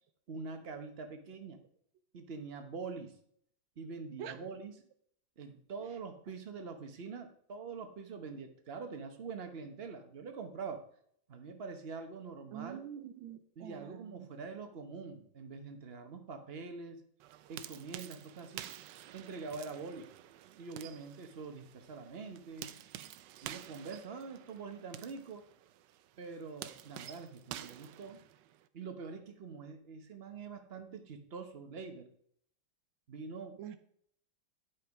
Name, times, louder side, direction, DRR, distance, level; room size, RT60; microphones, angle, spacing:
voice 1, 0.3-1.6 2.1-3.1 3.8-4.7 5.4-10.8 11.3-12.8 13.6-17.0 17.5-18.7 19.1-20.1 20.5-22.7 23.4-25.4 26.2-28.2 28.7-32.1 33.1-33.6, right 4 dB, 40° right, 6 dB, 1.0 m, -44 dB
voice 2, 12.5-14.3 33.6-33.8, right 9 dB, 90° right, 10 dB, 1.5 m, -45 dB
sound 1, 17.2-28.7, right 12 dB, 75° right, 1.1 m, -50 dB
10.5 x 5.6 x 4.8 m, 0.65 s
omnidirectional pair, 2.1 m